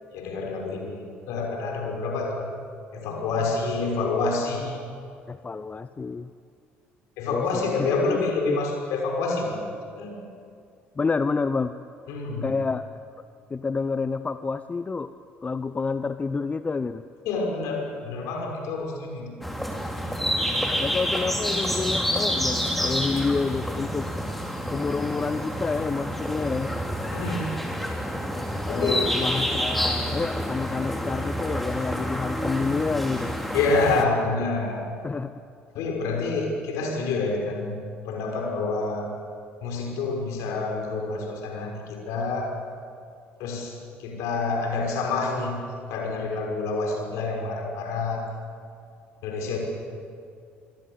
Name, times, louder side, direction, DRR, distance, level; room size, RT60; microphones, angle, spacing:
voice 1, 0.1-2.5 2.9-4.8 7.2-9.7 9.9-10.2 12.1-12.5 17.3-19.3 27.1-27.5 28.7-29.0 33.5-35.0 35.7-37.8 38.1-39.1 39.6-42.6 43.4-45.6 45.9-48.3 49.2-49.6, left 3 dB, 60° left, 1 dB, 5.9 m, -27 dB
voice 2, 5.3-6.3 7.3-8.2 8.5-8.6 11.0-11.7 12.4-12.9 13.5-15.1 15.4-17.0 20.8-24.1 24.7-26.7 28.6-33.4 35.0-35.3, left 4 dB, 25° left, 13 dB, 0.8 m, -28 dB
sound 1, 19.4-34.0, equal, ahead, 4.0 m, -28 dB
25.5 x 24.5 x 8.1 m, 2.4 s
figure-of-eight pair, 55°, 6 cm